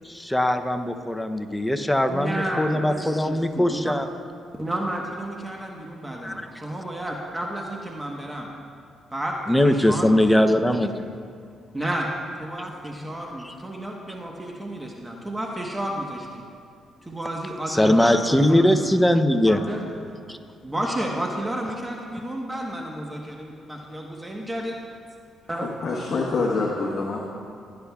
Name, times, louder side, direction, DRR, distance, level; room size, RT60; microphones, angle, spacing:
voice 1, 0.0-4.1 6.2-6.5 9.5-10.9 13.0-13.1 13.4-13.5 17.7-19.6 20.3-20.4, left 1 dB, 5° left, 7 dB, 0.6 m, -21 dB
voice 2, 2.1-4.0 4.6-8.5 9.1-9.3 9.6-10.9 11.7-12.1 12.4-16.4 17.0-18.7 19.5-19.8 20.6-24.8 25.5-25.7, right 1 dB, 15° right, 0 dB, 1.1 m, -31 dB
voice 3, 25.6-27.2, left 3 dB, 50° left, -2 dB, 1.2 m, -26 dB
17.0 x 9.9 x 2.3 m, 2.4 s
cardioid pair, 90°, 0 cm